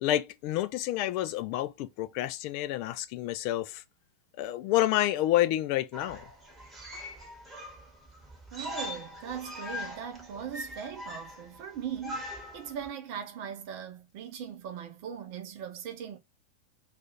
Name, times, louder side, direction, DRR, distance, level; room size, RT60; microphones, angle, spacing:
voice 1, 0.0-3.8 4.4-6.3 6.9-7.0, left 14 dB, 45° left, 0.3 m, -29 dB
sound 1, 5.9-12.9, left 1 dB, 10° right, 1.0 m, -42 dB
voice 2, 8.5-16.2, right 8 dB, 45° right, 0.6 m, -39 dB
2.4 x 2.4 x 2.7 m
figure-of-eight pair, 90°, 0 cm